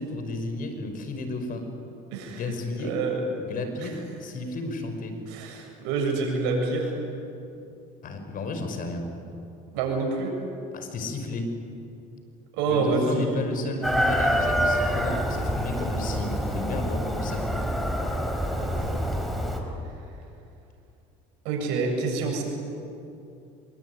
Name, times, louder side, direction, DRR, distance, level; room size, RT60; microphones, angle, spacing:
voice 1, 0.0-1.7 2.3-3.0 3.4-5.2 8.0-9.1 10.7-11.5 12.6-17.6, left 2 dB, 50° left, 7 dB, 5.3 m, -33 dB
voice 2, 2.8-3.2 3.8-3.9 5.3-6.9 9.7-10.3 12.5-13.6 18.6-19.0 21.4-22.4, right 3 dB, 80° right, 1 dB, 7.4 m, -27 dB
Chicken rooster, 13.8-19.6, equal, ahead, 4.9 m, -26 dB
26.0 x 23.0 x 9.5 m, 2.7 s
supercardioid pair, 95°, 18 cm